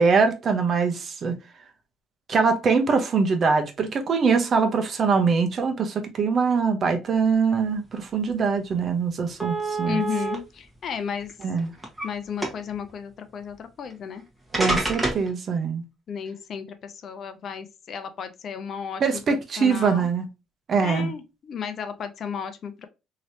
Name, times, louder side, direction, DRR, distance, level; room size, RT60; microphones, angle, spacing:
voice 1, 0.0-1.4 2.3-10.0 11.4-11.7 14.5-15.8 19.0-20.2 20.7-21.1, right 5 dB, 45° right, 0.7 m, -23 dB
sound 1, 8.3-8.4 8.7-8.8 9.4-10.4 11.2-12.1 12.4-12.8 13.9-14.0 14.5-15.3, right 2 dB, 10° right, 1.2 m, -27 dB
voice 2, 9.9-11.3 12.0-14.2 16.1-20.1 20.8-22.9, left 7 dB, 50° left, 0.5 m, -33 dB
3.0 x 2.8 x 2.6 m
cardioid pair, 95°, 0 cm